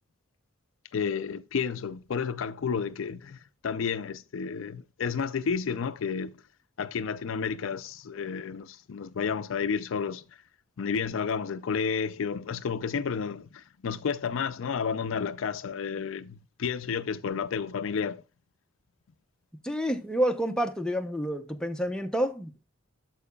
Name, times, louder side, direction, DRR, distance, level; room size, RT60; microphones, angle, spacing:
voice 1, 0.9-6.3 6.8-10.2 10.8-18.2, left 6 dB, 70° left, 0.4 m, -31 dB
voice 2, 19.6-22.6, equal, 5° left, 0.7 m, -29 dB
13.5 x 4.7 x 2.3 m
head